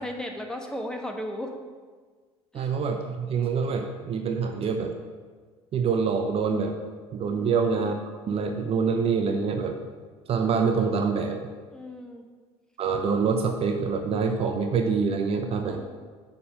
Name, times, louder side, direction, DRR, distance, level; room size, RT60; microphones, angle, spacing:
voice 1, 0.0-1.5 2.5-2.7 7.2-7.7 11.7-12.2 15.7-15.8, left 1 dB, 5° left, 2 dB, 1.2 m, -36 dB
voice 2, 2.5-4.9 5.7-6.8 7.1-7.9 8.3-9.8 10.3-11.4 12.8-15.8, right 5 dB, 40° right, 5 dB, 0.8 m, -25 dB
6.9 x 5.4 x 6.6 m, 1.5 s
figure-of-eight pair, 60°, 15 cm